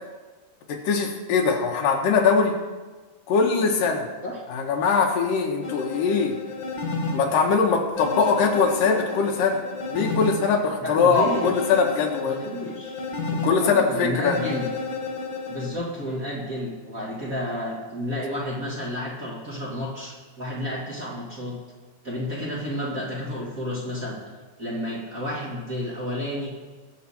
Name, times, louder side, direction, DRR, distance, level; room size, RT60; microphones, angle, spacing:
voice 1, 0.7-2.6 3.3-4.1 4.5-6.4 7.1-9.6 9.9-12.4 13.4-14.4, left 5 dB, 85° left, 2 dB, 3.0 m, -22 dB
sound 1, 5.6-7.2 8.0-10.4 11.1-13.5 14.3-15.7, left 3 dB, 40° left, 2.1 m, -31 dB
voice 2, 10.8-11.5 12.2-13.1 13.6-14.7 15.5-21.6 22.0-24.2 24.6-26.5, equal, 30° right, -5 dB, 2.0 m, -31 dB
21.0 x 7.6 x 4.3 m, 1.3 s
omnidirectional pair, 3.8 m